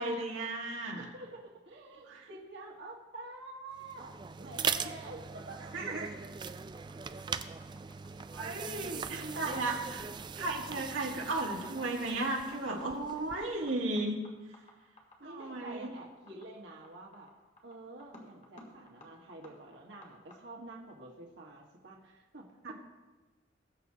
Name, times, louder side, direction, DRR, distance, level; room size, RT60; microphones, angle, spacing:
voice 1, 0.0-1.1 2.1-2.3 4.4-4.5 5.7-6.1 8.3-10.1 10.4-14.2 15.2-15.9 22.6-22.7, right 2 dB, 90° right, -2 dB, 1.7 m, -35 dB
voice 2, 1.0-5.6 8.6-9.6 15.2-17.3 17.6-22.7, right 2 dB, 65° right, -2 dB, 1.6 m, -48 dB
sound 1, 3.8-13.6, right 6 dB, 25° right, 0.3 m, -40 dB
sound 2, 6.7-20.4, left 1 dB, 40° left, 2.2 m, -56 dB
20.0 x 8.1 x 2.9 m, 1.2 s
head